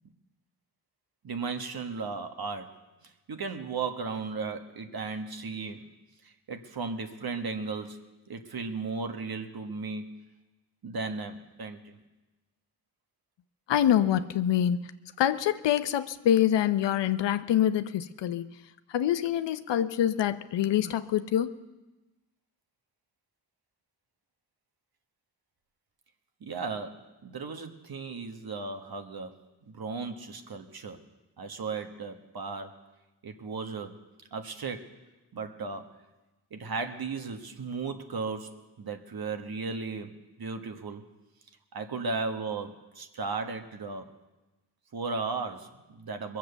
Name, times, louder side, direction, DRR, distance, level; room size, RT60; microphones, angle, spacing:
voice 1, 1.2-5.9 6.2-10.2 10.8-12.0 26.4-29.4 29.7-31.0 31.4-32.7 33.2-34.0 34.3-34.9 35.3-35.9 36.5-41.0 41.7-44.1 44.9-46.4, right 4 dB, 60° right, 6 dB, 1.5 m, -36 dB
voice 2, 13.7-14.8 15.2-18.5 18.9-21.6, left 10 dB, 85° left, 12 dB, 0.7 m, -25 dB
22.0 x 7.5 x 6.9 m, 1.1 s
cardioid pair, 50°, 42 cm